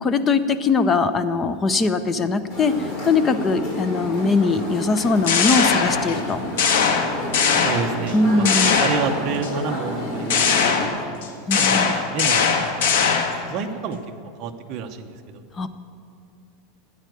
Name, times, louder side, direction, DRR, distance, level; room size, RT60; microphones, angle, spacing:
voice 1, 0.0-2.7 3.1-6.4 8.1-8.8 11.5-11.8 15.6-15.7, left 3 dB, 15° left, 12 dB, 0.5 m, -21 dB
sound 1, 2.5-10.9, left 1 dB, 35° left, 3.9 m, -30 dB
sound 2, 5.0-6.3 6.6-8.1 8.5-9.5 10.3-13.5, left 6 dB, 85° left, 1.6 m, -20 dB
voice 2, 7.5-11.1 11.6-12.9 13.4-14.0 14.4-15.4, right 6 dB, 35° right, 3 dB, 0.9 m, -30 dB
12.5 x 9.4 x 9.2 m, 2.5 s
supercardioid pair, 175°, 0 cm